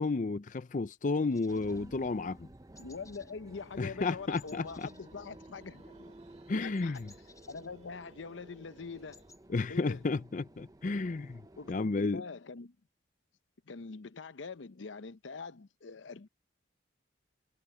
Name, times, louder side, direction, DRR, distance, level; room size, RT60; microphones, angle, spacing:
voice 1, 0.0-2.5 3.8-4.9 6.5-7.1 9.5-11.4 11.7-12.2, left 3 dB, 40° left, 0.5 m, -32 dB
sound 1, 1.3-2.4 2.7-3.4 3.6-3.9 4.3-5.9 6.1-8.2 8.6-8.7 8.9-9.4, left 4 dB, 20° left, 3.6 m, -60 dB
sound 2, 1.5-11.9, right 1 dB, 20° right, 0.7 m, -55 dB
voice 2, 2.8-6.1 6.6-7.0 7.5-9.2 9.7-10.0 11.6-12.7 13.7-16.3, left 4 dB, 80° left, 0.7 m, -44 dB
sound 3, 4.5-9.4, right 2 dB, 35° right, 3.2 m, -62 dB
head